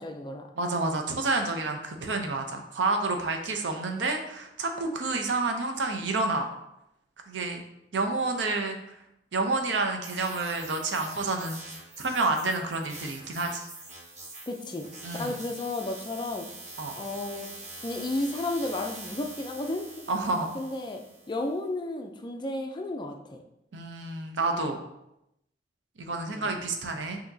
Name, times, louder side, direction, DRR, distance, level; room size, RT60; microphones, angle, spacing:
voice 1, 0.0-0.5 14.5-14.9 15.2-16.5 16.9-17.5 17.8-20.1 20.5-23.4 26.1-26.5, left 2 dB, 25° left, 4 dB, 0.4 m, -33 dB
voice 2, 0.6-6.5 7.3-7.6 7.9-8.9 9.3-11.6 12.0-13.7 15.0-15.4 16.8-17.0 20.1-20.5 23.7-24.8 26.0-27.2, right 3 dB, 90° right, 5 dB, 0.6 m, -29 dB
sound 1, 10.0-21.4, right 2 dB, 40° right, 0.9 m, -44 dB
5.8 x 2.8 x 2.7 m, 0.84 s
head